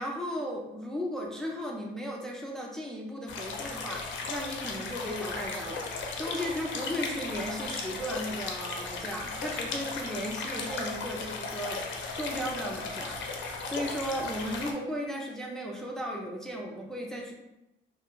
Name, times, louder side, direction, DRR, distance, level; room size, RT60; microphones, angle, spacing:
voice 1, 0.0-5.9 6.2-13.2 13.6-17.3, equal, ahead, -1 dB, 0.4 m, -35 dB
sound 1, 3.3-14.7, left 4 dB, 75° left, 0.5 m, -36 dB
2.3 x 2.3 x 3.0 m, 0.93 s
cardioid pair, 90°, 20 cm